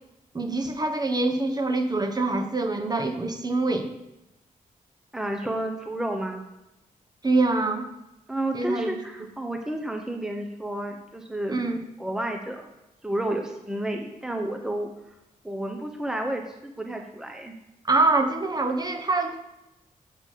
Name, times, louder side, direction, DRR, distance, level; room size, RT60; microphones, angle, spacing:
voice 1, 0.3-4.0 7.2-7.9 8.5-9.0 11.5-11.8 17.9-19.4, right 2 dB, 25° right, 5 dB, 1.1 m, -25 dB
voice 2, 5.1-6.4 8.3-11.6 12.0-12.7 13.0-14.9 15.4-17.5, right 1 dB, 5° right, 3 dB, 1.0 m, -31 dB
8.3 x 5.9 x 6.6 m, 0.91 s
cardioid pair, 95°, 15 cm